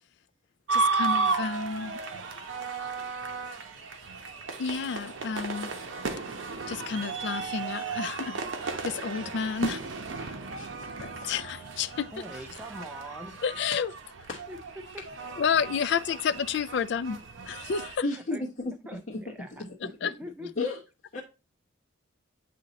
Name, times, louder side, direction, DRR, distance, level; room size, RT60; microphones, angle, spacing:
voice 1, 0.7-2.0 4.6-5.7 6.7-8.4 8.8-9.8 11.0-12.1 13.4-13.9 15.4-17.2 17.4-18.0 20.0-20.1, left 6 dB, 60° left, 0.3 m, -30 dB
sound 1, 0.7-18.0, right 4 dB, 80° right, 0.9 m, -34 dB
voice 2, 10.5-10.9 11.2-11.3 14.3-14.4 18.0-18.7 19.1-19.2 19.6-19.7 20.4-20.8 21.1-21.2, left 3 dB, 45° left, 1.1 m, -32 dB
voice 3, 12.1-13.4 14.5-15.0 18.1-18.4 18.8-20.5, equal, 10° right, 0.5 m, -43 dB
8.3 x 2.8 x 4.0 m
head